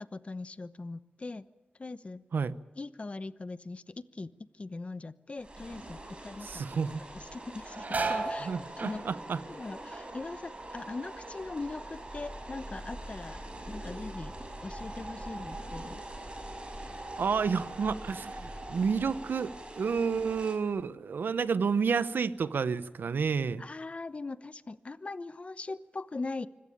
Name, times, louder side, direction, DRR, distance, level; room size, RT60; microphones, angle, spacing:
voice 1, 0.0-1.4 1.8-2.2 2.8-6.7 7.1-9.0 9.4-13.4 13.7-14.3 14.6-16.0 23.6-26.5, left 3 dB, 40° left, 15 dB, 0.9 m, -40 dB
sound 1, 5.4-20.6, right 1 dB, 30° right, 6.0 m, -44 dB
voice 2, 6.4-7.0 8.4-9.4 17.2-23.6, right 5 dB, 85° right, 15 dB, 0.9 m, -30 dB
sound 2, 7.6-12.7 13.0-13.6 14.1-17.0 17.4-17.5 18.5-18.7 19.1-20.2 20.7-20.8 21.4-22.1 22.4-23.5, right 3 dB, 55° right, 4.0 m, -40 dB
sound 3, 11.2-20.5, equal, 10° right, 3.5 m, -48 dB
25.0 x 17.0 x 8.7 m, 1.2 s
wide cardioid pair, 80°, 3 cm